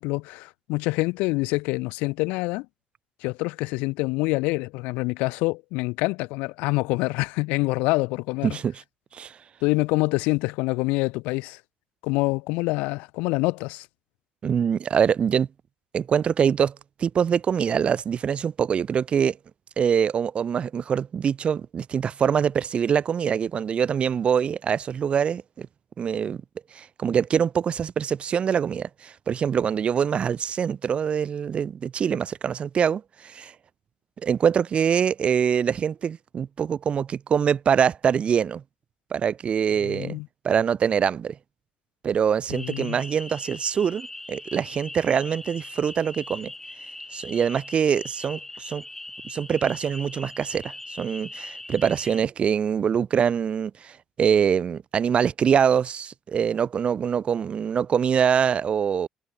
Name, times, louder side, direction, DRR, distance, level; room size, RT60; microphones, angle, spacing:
voice 1, 0.0-2.7 3.2-8.6 9.6-11.6 12.0-13.9 39.8-40.3 42.5-43.0, left 24 dB, 85° left, 1.4 m, -26 dB
voice 2, 8.4-8.7 9.1-9.4 14.4-15.5 15.9-19.4 19.8-25.7 26.0-26.4 26.7-33.5 34.2-38.6 39.1-40.2 40.4-41.4 42.0-46.5 47.1-48.8 49.2-59.1, right 7 dB, 50° right, 2.7 m, -24 dB
sound 1, 42.5-52.2, left 2 dB, 15° left, 7.3 m, -40 dB
supercardioid pair, 65°, 2 cm